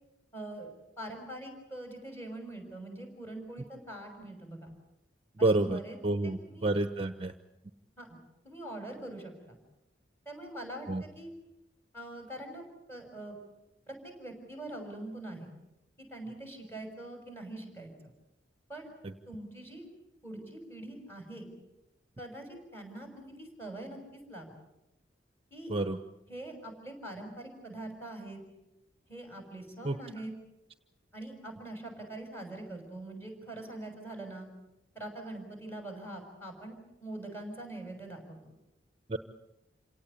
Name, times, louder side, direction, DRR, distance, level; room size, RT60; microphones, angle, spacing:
voice 1, 0.3-0.7 1.0-4.7 5.4-6.0 6.2-6.8 8.0-8.2 8.4-9.6 10.2-11.3 11.9-13.4 13.9-15.5 16.0-18.1 18.7-18.9 19.3-19.8 20.2-21.5 22.2-24.5 25.5-25.7 26.3-28.4 29.1-30.3 31.1-34.5 34.9-38.4, right 1 dB, 10° left, 3 dB, 6.4 m, -43 dB
voice 2, 5.4-7.3 10.9-11.0 19.0-19.1 25.7-26.0 29.8-30.0 39.1-39.2, right 2 dB, 30° right, 8 dB, 1.0 m, -29 dB
28.0 x 18.0 x 8.5 m, 0.93 s
head